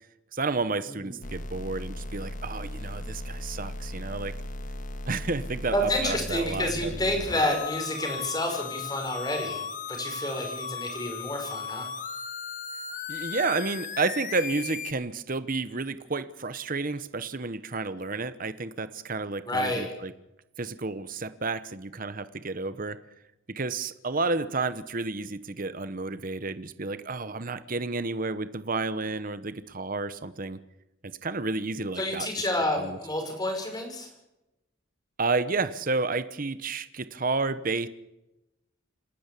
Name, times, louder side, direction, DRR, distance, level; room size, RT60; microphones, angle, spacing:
voice 1, 0.3-4.3 5.1-6.9 13.1-20.1 20.6-23.0 23.5-30.6 31.0-32.3 32.8-33.0 35.2-37.9, right 3 dB, 40° right, 13 dB, 1.0 m, -31 dB
sound 1, 1.2-14.9, left 4 dB, 40° left, 1.8 m, -36 dB
voice 2, 5.7-11.9 19.5-19.9 32.0-34.1, left 1 dB, 20° left, 4 dB, 5.6 m, -29 dB
28.0 x 12.5 x 8.4 m, 0.91 s
head